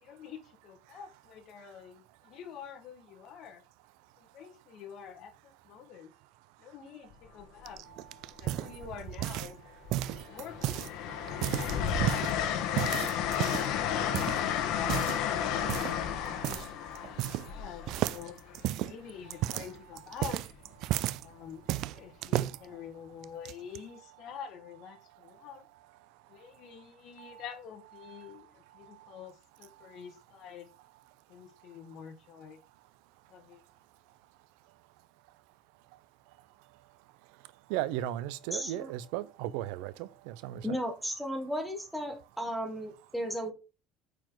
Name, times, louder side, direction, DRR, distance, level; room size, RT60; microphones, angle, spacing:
voice 1, 0.0-3.6 4.2-6.1 6.6-7.8 8.4-9.6 10.0-12.1 12.5-13.5 14.0-14.4 14.6-15.5 15.8-18.4 18.8-20.4 21.2-21.7 21.9-25.7 26.3-30.7 31.3-32.6 33.3-33.6, left 8 dB, 50° left, 1.7 m, -47 dB
Train, 7.1-7.4 8.7-9.4 9.9-18.6 20.2-20.5, left 9 dB, 65° left, 1.4 m, -32 dB
sound 1, 7.7-9.6 9.9-10.9 11.3-12.3 12.8-13.7 14.1-14.4 14.8-15.2 15.7-16.0 16.4-16.7 16.9-17.6 17.9-21.2 21.7-22.6 23.2-23.8, right 15 dB, 55° right, 0.3 m, -33 dB
voice 2, 7.9-8.9 10.0-10.4 11.1-12.8 13.4-14.1 15.9-16.0 17.2-17.6 19.3-19.5 20.0-20.1 20.9-22.2 25.3-25.5 26.0-26.9 27.2-27.4 28.0-29.2 29.7-30.0 31.6-31.8 33.5-33.6 34.7-34.8 36.6-40.8, right 13 dB, 90° right, 0.6 m, -42 dB
voice 3, 38.5-38.9 40.6-43.5, equal, ahead, 1.3 m, -35 dB
9.0 x 4.9 x 3.9 m
cardioid pair, 160°, 0 cm